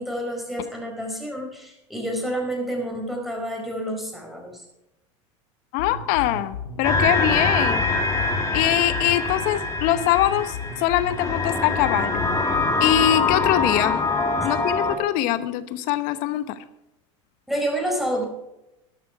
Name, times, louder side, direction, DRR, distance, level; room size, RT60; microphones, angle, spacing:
voice 1, 0.0-4.6 14.4-14.5 17.5-18.3, right 1 dB, ahead, 1 dB, 4.7 m, -29 dB
voice 2, 5.7-7.8 8.5-12.2 12.8-14.0 14.4-16.6, left 13 dB, 55° left, 13 dB, 1.0 m, -23 dB
sound 1, 5.8-13.8, left 5 dB, 90° left, 2.3 m, -35 dB
sound 2, 6.8-15.0, left 3 dB, 20° left, 2.2 m, -24 dB
13.5 x 11.5 x 4.7 m, 0.90 s
hypercardioid pair, 100°, 16 cm